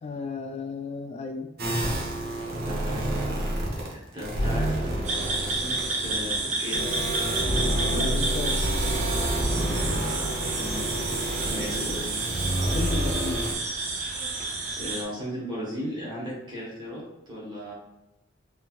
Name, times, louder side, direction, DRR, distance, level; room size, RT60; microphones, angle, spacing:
voice 1, 0.0-1.5 7.9-8.6 11.4-11.7 12.6-13.4, left 4 dB, 35° left, 5 dB, 0.3 m, -34 dB
sound 1, 1.6-3.9 4.2-13.5, right 1 dB, 55° right, 1.1 m, -29 dB
voice 2, 2.6-3.0 3.5-6.9 9.9-10.8 11.5-12.2 14.8-17.7, equal, 25° right, -7 dB, 1.4 m, -37 dB
sound 2, 5.0-15.0, right 3 dB, 40° right, 0.7 m, -30 dB
sound 3, 6.7-12.0, right 1 dB, 55° left, 1.0 m, -35 dB
4.0 x 3.9 x 2.4 m, 0.95 s
head